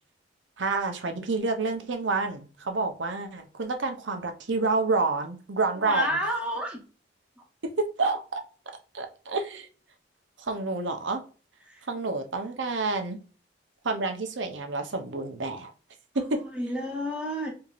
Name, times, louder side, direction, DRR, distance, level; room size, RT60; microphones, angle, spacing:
voice 1, 0.6-6.1 7.8-8.4 8.9-9.7 10.4-11.2 11.9-13.2 13.8-15.7 16.1-16.4, right 3 dB, 80° right, 5 dB, 0.7 m, -28 dB
voice 2, 5.8-6.8 11.7-11.9 16.5-17.5, equal, 5° right, 0 dB, 1.0 m, -30 dB
4.5 x 2.8 x 2.4 m, 0.37 s
head